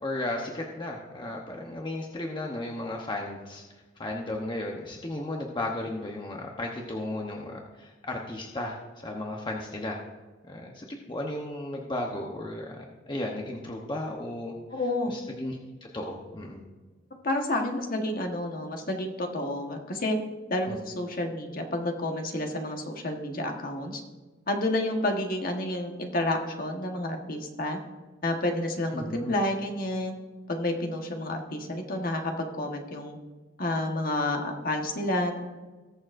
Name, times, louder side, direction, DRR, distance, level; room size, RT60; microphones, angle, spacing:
voice 1, 0.0-3.6 4.0-8.8 9.0-10.0 10.5-14.5 15.1-15.6 15.9-16.6 20.7-20.8 28.9-29.3, left 1 dB, 25° left, 0 dB, 0.9 m, -34 dB
voice 2, 14.7-15.1 17.1-20.2 20.5-24.0 24.5-27.8 28.2-30.1 30.5-33.2 33.6-35.4, left 1 dB, 45° left, 3 dB, 1.4 m, -30 dB
20.5 x 7.0 x 2.6 m, 1.3 s
head